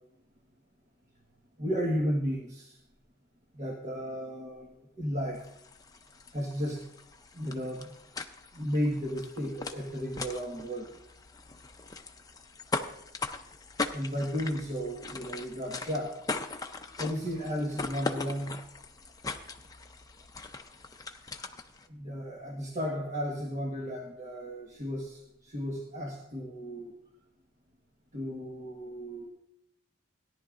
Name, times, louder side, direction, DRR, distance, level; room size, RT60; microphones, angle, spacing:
voice 1, 1.6-2.7 3.6-4.7 5.0-5.4 6.3-6.8 7.3-7.9 8.5-10.9 13.9-16.2 17.0-18.5 21.9-25.2 25.5-26.9 28.1-29.3, equal, 40° right, -2 dB, 1.5 m, -33 dB
sound 1, 5.3-21.9, left 3 dB, 20° left, 0.6 m, -40 dB
17.5 x 10.5 x 2.5 m, 0.80 s
head